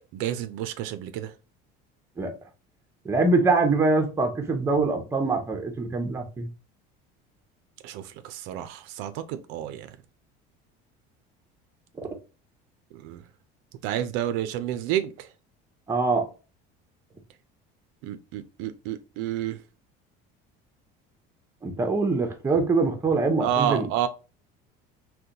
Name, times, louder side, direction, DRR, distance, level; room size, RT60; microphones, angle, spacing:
voice 1, 0.1-1.3 7.8-9.9 12.9-13.2 13.8-15.3 18.0-19.6 23.4-24.1, right 10 dB, 70° right, 0.4 m, -30 dB
voice 2, 3.0-6.5 15.9-16.3 21.6-23.9, right 3 dB, 15° right, 0.6 m, -24 dB
3.7 x 2.2 x 2.7 m
cardioid pair, 150°, 21 cm